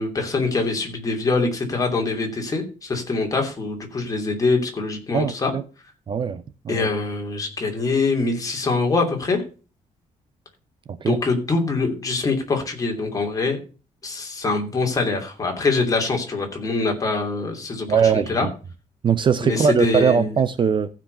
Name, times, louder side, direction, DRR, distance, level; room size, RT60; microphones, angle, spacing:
voice 1, 0.0-5.5 6.7-9.4 11.0-13.6 14.0-18.5 19.4-20.3, left 3 dB, 25° left, 3.0 m, -24 dB
voice 2, 5.1-5.6 6.1-6.9 10.9-11.2 17.9-18.5 19.0-20.9, right 7 dB, 35° right, 0.7 m, -21 dB
15.0 x 5.2 x 6.7 m
cardioid pair, 155°, 13 cm